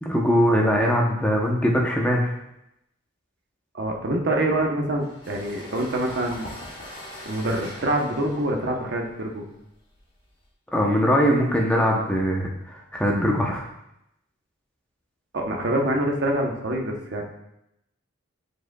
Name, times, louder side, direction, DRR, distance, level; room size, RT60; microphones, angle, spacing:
voice 1, 0.0-2.3 10.7-13.6, equal, 5° left, -1 dB, 0.7 m, -21 dB
voice 2, 3.7-6.5 7.2-9.5 15.3-17.2, right 1 dB, 55° right, 1 dB, 0.8 m, -25 dB
sound 1, 5.0-10.5, left 1 dB, 40° left, 1.8 m, -42 dB
9.0 x 4.8 x 2.3 m, 0.84 s
head